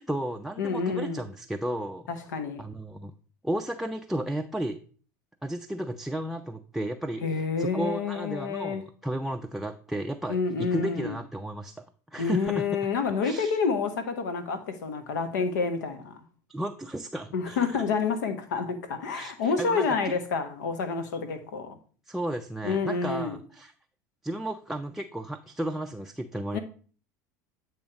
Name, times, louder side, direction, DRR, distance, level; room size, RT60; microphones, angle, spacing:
voice 1, 0.0-2.1 2.6-3.1 3.4-4.8 5.4-11.7 12.1-12.6 13.2-13.6 16.5-17.7 19.1-20.1 22.1-23.7 24.2-26.6, right 1 dB, 5° right, 0.4 m, -33 dB
voice 2, 0.6-1.2 2.1-2.6 7.2-8.8 10.3-11.2 12.2-16.2 17.3-21.8 22.6-23.4 26.5-26.6, left 5 dB, 75° left, 1.0 m, -28 dB
8.4 x 3.1 x 4.9 m
hypercardioid pair, 75°, 10 cm